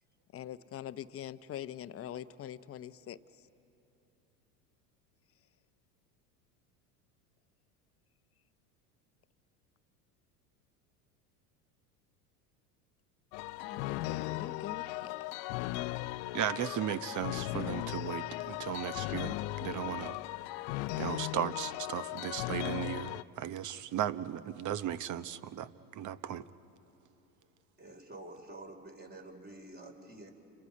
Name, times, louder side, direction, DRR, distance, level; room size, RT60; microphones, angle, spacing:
voice 1, 0.3-3.5 13.6-15.1, left 11 dB, 30° left, 0.8 m, -44 dB
sound 1, 13.3-23.2, left 18 dB, 60° left, 0.7 m, -37 dB
voice 2, 16.3-20.2 21.0-26.4, right 10 dB, 40° right, 0.9 m, -36 dB
voice 3, 27.8-30.3, right 2 dB, 20° right, 3.8 m, -48 dB
30.0 x 29.0 x 5.3 m
hypercardioid pair, 90°, 47 cm